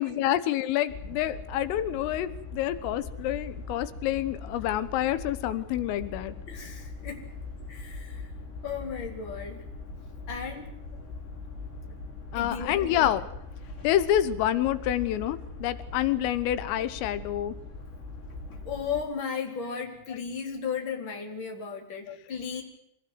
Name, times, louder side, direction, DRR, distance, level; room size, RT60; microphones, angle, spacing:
voice 1, 0.0-6.4 12.3-13.3 13.8-17.6 20.1-20.2 22.1-22.2, left 12 dB, 90° left, 14 dB, 3.8 m, -28 dB
sound 1, 0.9-19.0, left 3 dB, 60° left, 8.1 m, -41 dB
voice 2, 6.5-7.2 7.7-8.3 8.6-9.6 10.3-10.7 12.3-13.1 18.5-22.6, left 6 dB, 25° left, 3 dB, 4.1 m, -35 dB
25.5 x 18.0 x 7.9 m, 0.79 s
omnidirectional pair, 5.7 m